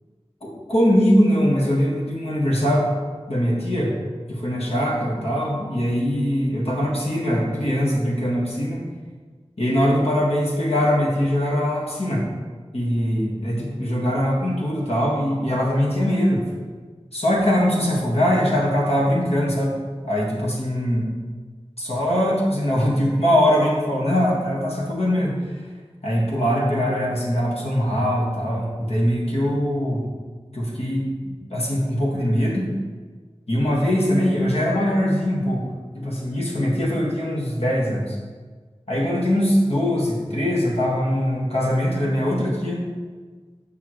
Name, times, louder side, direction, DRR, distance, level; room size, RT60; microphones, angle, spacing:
voice 1, 0.4-2.9 3.3-4.0 4.3-8.8 9.6-12.3 12.7-16.4 17.1-19.8 20.0-21.1 21.8-25.4 26.0-30.1 30.5-32.7 33.5-35.7 35.9-38.2 38.9-42.8, equal, 70° left, -3 dB, 1.7 m, -22 dB
8.4 x 5.9 x 3.1 m, 1.4 s
wide cardioid pair, 50°, 11 cm